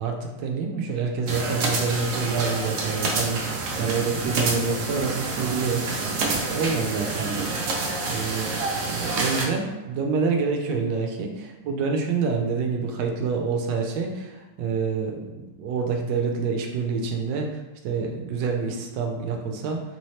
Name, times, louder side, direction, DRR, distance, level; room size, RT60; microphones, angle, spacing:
voice 1, 0.0-8.5 8.8-17.5 17.8-19.8, right 5 dB, 90° right, 2 dB, 1.3 m, -27 dB
sound 1, 1.3-9.5, right 3 dB, 65° right, 0.9 m, -28 dB
3.9 x 2.8 x 3.1 m, 1.1 s
omnidirectional pair, 1.9 m